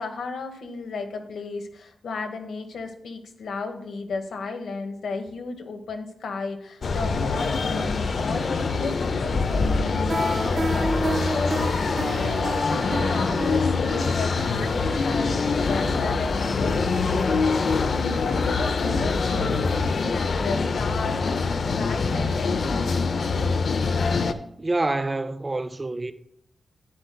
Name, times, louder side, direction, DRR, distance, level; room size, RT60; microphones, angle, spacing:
voice 1, 0.0-23.0, left 4 dB, 90° left, 1.1 m, -34 dB
sound 1, 6.8-24.3, left 4 dB, 50° left, 0.5 m, -24 dB
sound 2, 10.1-16.9, right 2 dB, 45° right, 1.5 m, -32 dB
voice 2, 24.6-26.1, right 2 dB, 20° right, 0.3 m, -27 dB
11.5 x 9.4 x 2.2 m
wide cardioid pair, 175°, 0 cm